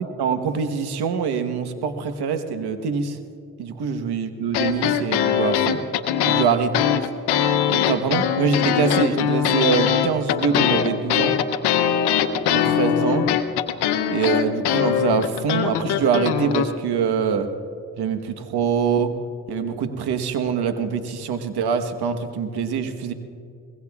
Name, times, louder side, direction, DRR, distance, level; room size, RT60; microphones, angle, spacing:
voice 1, 0.2-3.2 3.6-5.8 6.2-6.7 7.7-11.4 12.5-13.3 14.1-17.5 18.0-19.2 19.5-23.1, right 6 dB, 80° right, 8 dB, 1.3 m, -24 dB
sound 1, 4.5-16.6, left 9 dB, 85° left, 0.8 m, -21 dB
24.0 x 20.5 x 2.4 m, 2.5 s
supercardioid pair, 55°, 38 cm